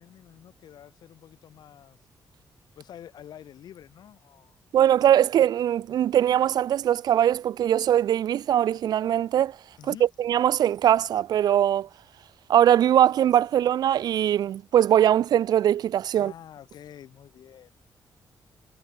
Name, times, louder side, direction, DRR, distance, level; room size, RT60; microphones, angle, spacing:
voice 1, 0.0-2.0 2.8-4.6 9.8-10.1 16.1-17.7, left 10 dB, 75° left, 4.4 m, -47 dB
voice 2, 4.7-9.6 9.9-11.9 12.5-16.3, right 10 dB, 70° right, 0.5 m, -21 dB
cardioid pair, 135°, 7 cm